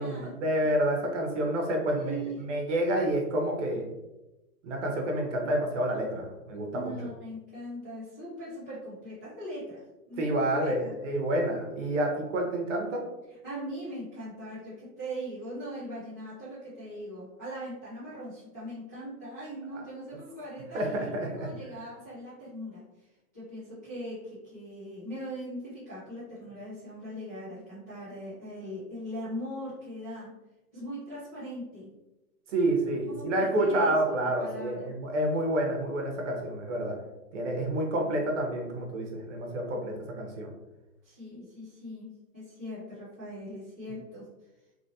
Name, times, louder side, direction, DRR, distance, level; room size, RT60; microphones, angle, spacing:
voice 1, 0.0-3.8 4.6-6.9 10.2-13.0 20.7-21.5 32.5-36.9 37.3-40.5, right 1 dB, 50° right, 1 dB, 0.9 m, -29 dB
voice 2, 1.9-2.6 6.7-10.9 13.4-22.8 23.3-30.3 30.7-31.9 33.1-34.9 41.0-44.2, equal, 15° left, -15 dB, 0.4 m, -40 dB
2.8 x 2.7 x 2.6 m, 1.0 s
hypercardioid pair, 155°, 46 cm